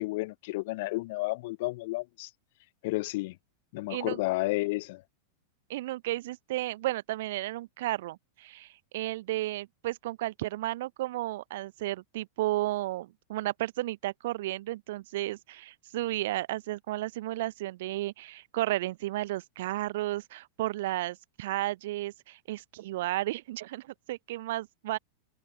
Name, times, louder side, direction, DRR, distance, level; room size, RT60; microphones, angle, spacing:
voice 1, 0.0-2.3 2.8-3.4 3.7-5.0, left 21 dB, 50° left, 0.7 m, -31 dB
voice 2, 3.9-4.2 5.7-25.0, right 16 dB, 55° right, 0.8 m, -33 dB
figure-of-eight pair, 90°, 0 cm